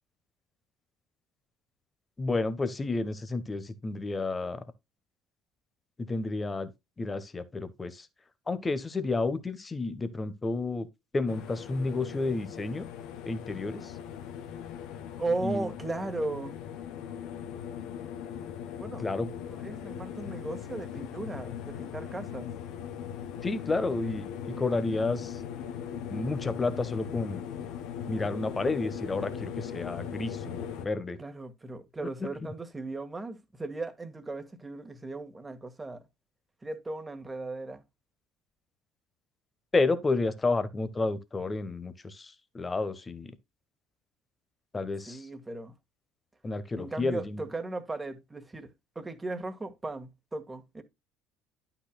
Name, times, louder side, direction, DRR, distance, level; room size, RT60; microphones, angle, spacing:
voice 1, 2.2-4.6 6.1-6.7 7.0-8.1 8.5-10.9 11.1-12.9 13.2-13.9 15.4-15.7 19.0-19.3 23.4-24.3 24.6-25.3 26.1-27.4 28.1-31.2 39.7-43.3 44.7-45.2 46.4-47.4, left 3 dB, 25° left, 1.3 m, -31 dB
sound 1, 11.3-30.9, left 8 dB, 65° left, 1.1 m, -39 dB
voice 2, 15.2-16.6 18.8-19.1 19.5-22.5 31.2-36.0 36.6-37.8 45.1-45.7 46.8-48.7 49.0-50.8, right 2 dB, 20° right, 1.8 m, -37 dB
12.0 x 5.8 x 2.3 m
hypercardioid pair, 60°, 0 cm